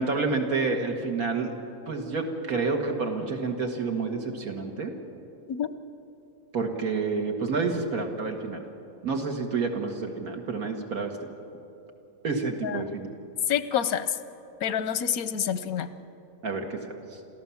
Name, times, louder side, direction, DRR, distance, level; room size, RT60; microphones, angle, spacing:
voice 1, 0.0-1.5 1.9-4.9 6.5-8.6 9.0-11.1 12.2-13.1 16.4-17.0, right 4 dB, 90° right, 3 dB, 2.2 m, -29 dB
voice 2, 13.5-14.1 14.6-15.9, left 9 dB, 85° left, 13 dB, 1.3 m, -27 dB
28.5 x 13.5 x 7.1 m, 2.8 s
omnidirectional pair, 1.5 m